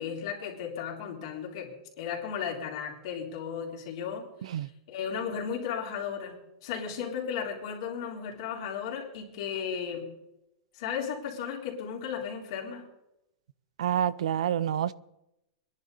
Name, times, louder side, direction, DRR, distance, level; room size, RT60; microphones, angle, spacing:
voice 1, 0.0-4.3 4.5-10.1 10.7-12.8, left 7 dB, 55° left, 3.6 m, -35 dB
voice 2, 13.8-14.9, right 10 dB, 90° right, 0.6 m, -27 dB
23.5 x 10.5 x 4.1 m
supercardioid pair, 170°, 3 cm